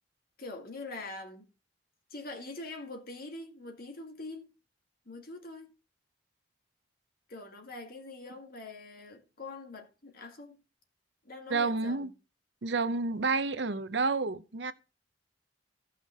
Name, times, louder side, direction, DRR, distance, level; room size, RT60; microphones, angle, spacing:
voice 1, 0.4-1.5 2.1-4.5 5.1-5.7 7.3-10.6 11.2-12.1, left 2 dB, 55° left, 2.1 m, -44 dB
voice 2, 11.5-12.1 12.6-14.7, right 3 dB, 70° right, 0.8 m, -30 dB
16.0 x 5.9 x 3.6 m
head